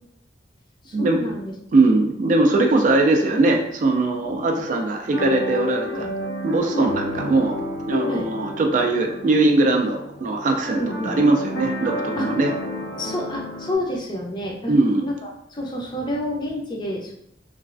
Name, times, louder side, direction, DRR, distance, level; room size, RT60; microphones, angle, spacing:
voice 1, 0.8-1.5 4.2-4.4 5.9-6.1 6.7-6.9 8.0-8.3 10.8-11.3 12.2-12.3 13.0-14.7 15.0-17.1, left 1 dB, 25° left, -1 dB, 0.5 m, -29 dB
voice 2, 1.7-6.1 6.4-7.6 7.9-12.5 14.7-15.0, right 2 dB, 45° right, 3 dB, 0.3 m, -20 dB
sound 1, 5.1-13.7, left 1 dB, 90° left, 0.7 m, -30 dB
3.0 x 2.4 x 2.4 m, 0.76 s
head